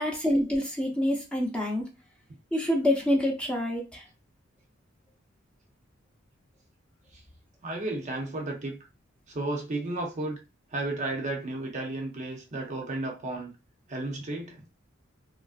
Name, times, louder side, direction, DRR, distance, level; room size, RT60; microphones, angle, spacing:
voice 1, 0.0-1.9 2.5-4.0, left 1 dB, 5° left, 0.6 m, -26 dB
voice 2, 7.6-8.8 9.3-10.4 10.7-13.5 13.9-14.6, right 2 dB, 35° right, 0.6 m, -33 dB
3.0 x 2.5 x 2.4 m
head